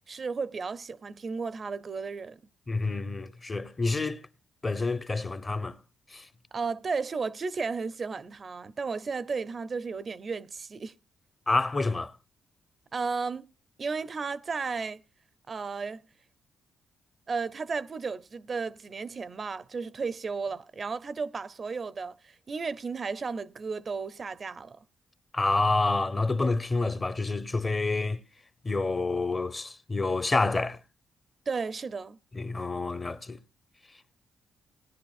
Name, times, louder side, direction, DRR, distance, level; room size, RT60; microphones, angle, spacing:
voice 1, 0.1-2.4 6.5-10.9 12.9-13.4 13.8-15.0 15.5-16.0 17.3-24.8 31.5-32.2, right 4 dB, 45° right, 0.5 m, -34 dB
voice 2, 2.7-4.2 4.6-5.8 6.1-6.3 11.5-12.1 25.3-28.2 28.6-30.8 32.3-33.4, left 3 dB, 30° left, 0.8 m, -28 dB
19.0 x 10.5 x 2.4 m
cardioid pair, 75°, 0 cm